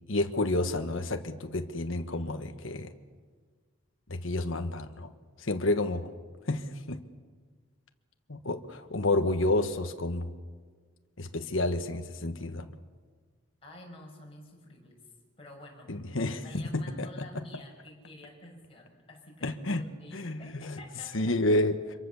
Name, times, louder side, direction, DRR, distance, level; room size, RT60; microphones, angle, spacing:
voice 1, 0.1-2.9 4.1-5.1 5.4-6.1 6.5-7.0 8.3-10.3 11.2-12.7 15.9-17.1 19.4-19.8 20.1-20.8 21.1-21.9, left 2 dB, 70° left, 6 dB, 1.4 m, -30 dB
voice 2, 13.6-15.1 15.4-19.5 19.8-21.3, left 1 dB, 25° left, 0 dB, 6.3 m, -50 dB
25.5 x 23.0 x 7.1 m, 1.5 s
head